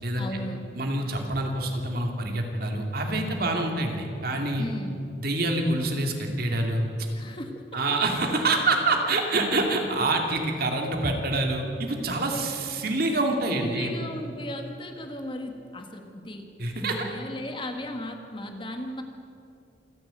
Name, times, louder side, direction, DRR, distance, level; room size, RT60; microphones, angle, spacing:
voice 1, 0.2-0.7 4.6-5.0 7.1-8.0 12.2-12.7 13.5-16.5 16.8-19.0, left 1 dB, 30° left, 5 dB, 1.7 m, -36 dB
voice 2, 0.7-4.7 5.2-6.8 7.7-14.0 16.6-17.1, right 2 dB, 55° right, 2 dB, 2.7 m, -26 dB
27.0 x 11.0 x 9.0 m, 2.5 s
head